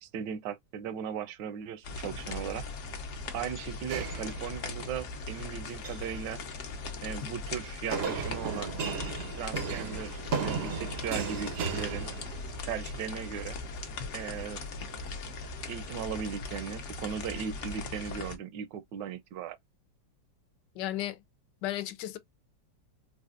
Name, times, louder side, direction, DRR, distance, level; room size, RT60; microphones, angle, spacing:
voice 1, 0.0-2.6 3.3-6.4 7.0-8.7 9.4-12.1 12.7-13.6 14.1-14.6 15.7-19.6, right 8 dB, 80° right, 1.2 m, -37 dB
sound 1, 1.8-18.4, left 3 dB, 55° left, 0.9 m, -39 dB
sound 2, 3.9-5.0 5.7-6.1 7.9-12.7, right 6 dB, 60° right, 0.6 m, -35 dB
voice 2, 20.8-21.2 21.6-22.2, left 14 dB, 80° left, 1.2 m, -34 dB
4.1 x 2.4 x 2.3 m
omnidirectional pair, 1.9 m